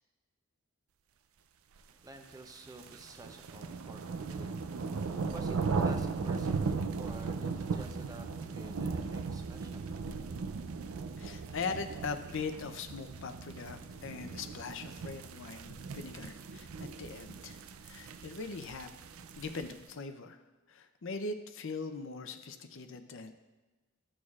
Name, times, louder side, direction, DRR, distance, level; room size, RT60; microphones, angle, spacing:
voice 1, 1.9-4.6 5.3-9.9, right 2 dB, 15° right, 4 dB, 0.7 m, -50 dB
sound 1, 2.3-19.9, right 4 dB, 80° right, 0.5 m, -37 dB
voice 2, 11.2-18.9 19.4-20.4 20.7-23.3, left 4 dB, 65° left, 8 dB, 0.6 m, -41 dB
13.5 x 6.3 x 2.4 m, 1.2 s
head